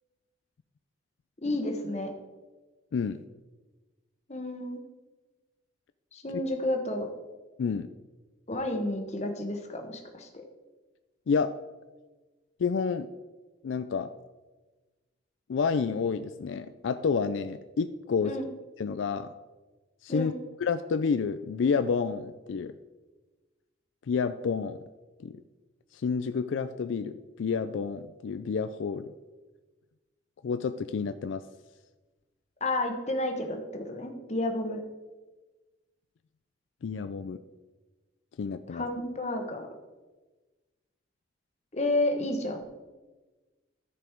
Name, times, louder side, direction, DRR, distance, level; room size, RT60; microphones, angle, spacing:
voice 1, 1.4-2.1 4.3-4.8 6.1-7.1 8.5-10.3 18.2-18.5 20.1-20.4 32.6-34.8 38.7-39.7 41.7-42.6, left 1 dB, 35° left, 4 dB, 1.1 m, -31 dB
voice 2, 2.9-3.2 6.3-6.4 7.6-7.9 11.3-11.5 12.6-13.1 13.6-14.1 15.5-18.3 18.8-19.3 20.0-20.3 20.6-22.7 24.1-24.8 25.2-25.4 25.9-29.1 30.4-31.4 36.8-37.4 38.4-38.9, left 5 dB, 75° left, 10 dB, 0.4 m, -29 dB
14.0 x 5.1 x 4.5 m, 1.2 s
head